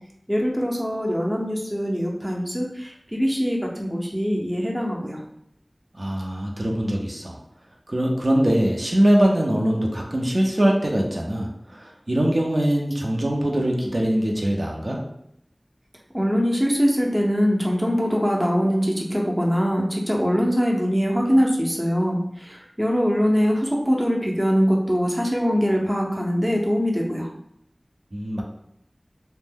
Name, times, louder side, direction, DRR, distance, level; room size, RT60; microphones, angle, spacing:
voice 1, 0.3-5.2 16.1-27.3, equal, 10° right, -1 dB, 0.6 m, -22 dB
voice 2, 6.0-7.4 7.9-15.0 28.1-28.4, right 1 dB, 60° right, -1 dB, 0.5 m, -22 dB
2.5 x 2.1 x 3.4 m, 0.74 s
wide cardioid pair, 45°, 0 cm